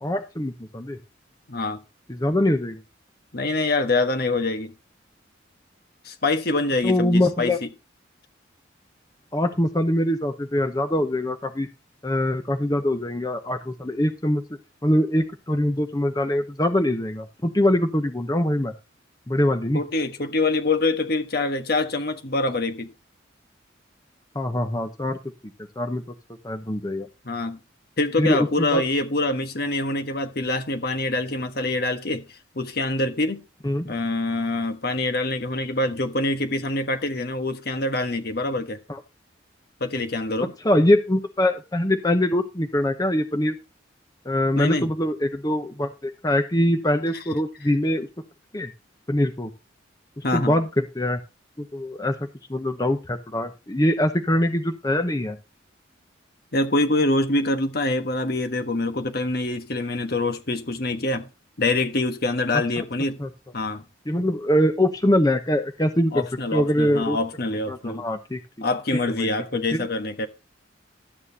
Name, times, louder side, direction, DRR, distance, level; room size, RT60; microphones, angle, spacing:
voice 1, 0.0-1.0 2.1-2.8 6.8-7.6 9.3-11.7 12.0-14.4 14.8-18.7 19.3-19.8 24.3-25.2 25.8-26.0 26.4-27.1 28.2-28.8 33.6-33.9 38.9-39.0 40.6-43.6 44.3-48.1 48.5-48.7 49.1-49.5 50.2-51.2 51.6-55.4 63.2-63.3 64.1-66.2 66.5-67.2 67.7-68.4 69.2-69.3 69.7-69.8, left 1 dB, 20° left, 0.9 m, -23 dB
voice 2, 1.5-1.8 3.3-4.7 6.0-7.7 19.7-22.9 27.2-27.6 28.0-33.4 33.8-38.8 39.8-40.5 44.5-44.9 47.1-47.2 50.2-50.6 56.5-61.3 61.6-63.2 63.5-63.8 66.1-68.0 68.6-70.3, left 2 dB, 55° left, 1.4 m, -25 dB
12.5 x 8.9 x 2.9 m
head